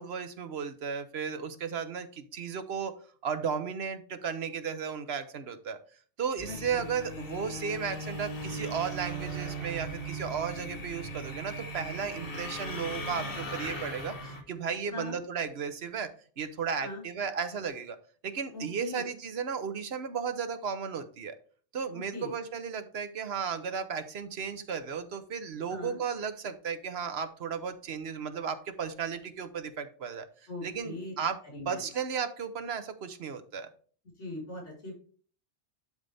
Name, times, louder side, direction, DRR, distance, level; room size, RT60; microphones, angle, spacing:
voice 1, 0.0-2.9 3.2-5.8 6.2-16.1 16.4-18.0 18.2-21.4 21.7-30.3 30.6-31.4 31.7-33.7, right 6 dB, 65° right, 10 dB, 1.0 m, -34 dB
sound 1, 6.4-14.4, right 1 dB, 55° left, 1.5 m, -38 dB
voice 2, 6.5-6.9 14.9-15.2 16.8-17.0 18.5-19.0 22.1-22.3 25.7-26.0 30.5-31.1 31.5-31.8 34.2-34.9, left 2 dB, 90° left, -3 dB, 4.6 m, -40 dB
11.5 x 4.0 x 3.4 m, 0.43 s
omnidirectional pair, 1.2 m